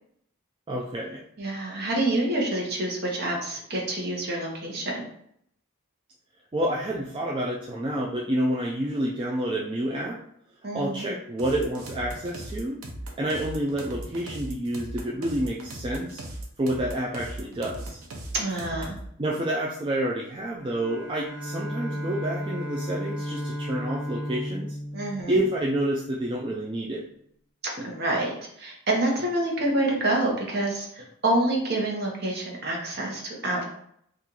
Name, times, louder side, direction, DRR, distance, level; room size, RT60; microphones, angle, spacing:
voice 1, 0.7-1.2 6.5-10.2 10.7-12.8 13.2-16.2 16.6-18.0 19.2-24.8 25.3-27.0, right 1 dB, 25° right, -3 dB, 0.3 m, -29 dB
voice 2, 1.4-5.0 10.6-11.1 18.3-18.9 24.9-25.4 27.8-33.6, right 1 dB, 50° right, -1 dB, 0.9 m, -27 dB
sound 1, 11.4-19.1, right 1 dB, 85° right, 0.7 m, -38 dB
Bowed string instrument, 20.6-26.1, equal, 25° left, 1.3 m, -34 dB
2.8 x 2.4 x 3.7 m, 0.71 s
head